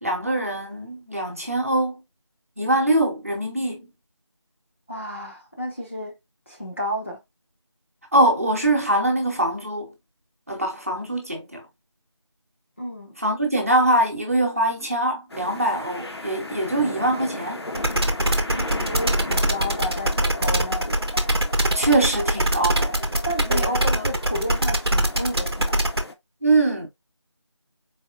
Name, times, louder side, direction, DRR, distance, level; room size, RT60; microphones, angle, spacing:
voice 1, 0.0-2.0 2.6-3.9 8.1-9.9 10.5-11.6 13.2-17.6 21.7-22.9 23.4-24.0 26.4-26.9, right 1 dB, 30° right, 0.9 m, -23 dB
voice 2, 4.9-6.2 6.5-7.2 12.8-13.2 18.5-21.0 23.2-25.8, equal, 25° left, 0.6 m, -31 dB
sound 1, 15.3-26.1, left 2 dB, 60° left, 0.8 m, -36 dB
sound 2, 17.7-26.0, right 1 dB, 55° right, 0.8 m, -22 dB
4.1 x 3.2 x 2.4 m
figure-of-eight pair, 175°, 15 cm